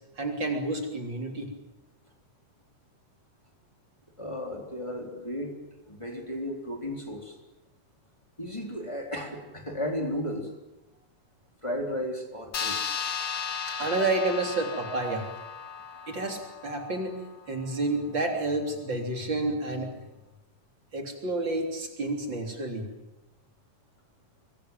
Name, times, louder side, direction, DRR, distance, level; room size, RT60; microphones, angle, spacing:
voice 1, 0.2-1.5 13.7-15.3 16.1-17.2 17.5-19.9 20.9-22.9, right 2 dB, 35° right, 3 dB, 4.0 m, -30 dB
voice 2, 4.2-5.5 5.9-7.4 8.4-10.5 11.6-12.8, left 1 dB, 10° left, 2 dB, 3.4 m, -34 dB
sound 1, 12.5-17.4, left 6 dB, 65° left, 0.9 m, -35 dB
25.5 x 21.5 x 9.2 m, 0.99 s
omnidirectional pair, 3.9 m